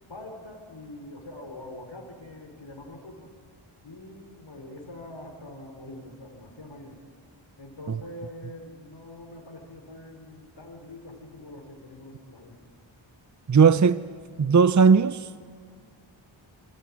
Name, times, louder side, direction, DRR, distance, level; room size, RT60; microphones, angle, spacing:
voice 1, 0.1-3.3 3.8-7.0 7.6-12.7, left 1 dB, 65° left, 4.2 m, -44 dB
voice 2, 13.5-14.0 14.4-15.3, right 5 dB, 35° right, 0.7 m, -18 dB
27.0 x 25.0 x 8.6 m
wide cardioid pair, 45°, 49 cm